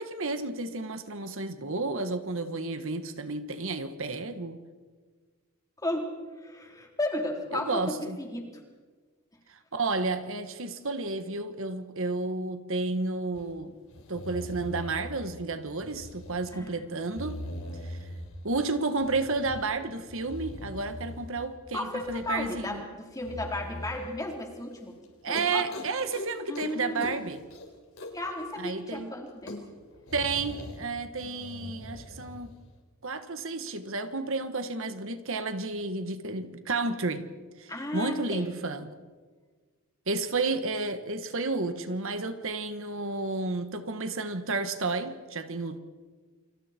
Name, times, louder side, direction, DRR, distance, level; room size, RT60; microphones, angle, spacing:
voice 1, 0.0-4.6 7.5-8.2 9.5-13.7 14.1-17.4 17.8-18.0 18.4-22.9 25.2-27.4 28.6-29.1 30.1-32.5 33.0-37.3 37.6-38.9 40.1-45.8, right 3 dB, 60° right, 9 dB, 1.5 m, -31 dB
voice 2, 5.8-8.5 16.5-16.9 21.7-25.0 25.3-25.6 26.5-27.1 28.0-29.6 37.7-38.5, left 1 dB, 15° left, 1 dB, 3.8 m, -34 dB
sound 1, 13.3-13.4 13.9-15.3 15.8-16.5 17.0-18.4 19.0-19.7 20.1-21.5 21.9-22.7 23.2-24.0 24.6-24.7 25.0-25.1 25.3-26.3 26.5-26.7 27.0-28.3 28.6-28.7 29.0-29.1 29.3-30.8 31.2-32.4, left 1 dB, 65° left, 4.1 m, -41 dB
29.0 x 26.0 x 4.5 m, 1.4 s
head